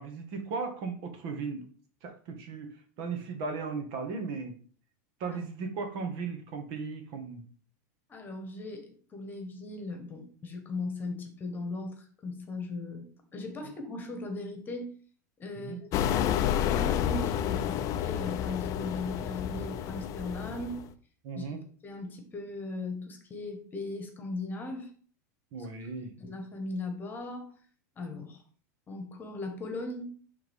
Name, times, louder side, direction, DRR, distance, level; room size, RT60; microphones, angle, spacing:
voice 1, 0.0-1.7 2.0-4.6 5.2-7.4 15.5-15.8 21.2-21.6 25.5-26.1, right 4 dB, 50° right, 5 dB, 1.7 m, -36 dB
voice 2, 8.1-13.1 13.3-14.9 15.4-20.8 21.3-21.5 21.8-24.9 26.2-27.5 28.0-28.4 28.9-30.1, left 2 dB, 20° left, 4 dB, 1.5 m, -38 dB
sound 1, 15.9-20.9, left 10 dB, 35° left, 0.5 m, -30 dB
10.5 x 3.7 x 3.6 m, 0.43 s
supercardioid pair, 140°, 9 cm